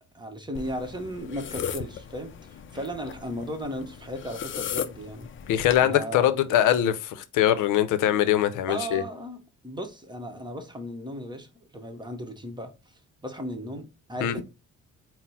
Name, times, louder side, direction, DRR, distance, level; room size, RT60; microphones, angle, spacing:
voice 1, 0.1-5.3 5.8-6.3 8.7-12.7 13.2-14.4, equal, 15° right, 0.9 m, -36 dB
sound 1, 0.5-5.8, left 8 dB, 40° left, 0.4 m, -37 dB
voice 2, 5.5-9.0 14.2-14.4, left 11 dB, 85° left, 0.6 m, -22 dB
4.1 x 2.1 x 4.1 m
cardioid pair, 90°, 30 cm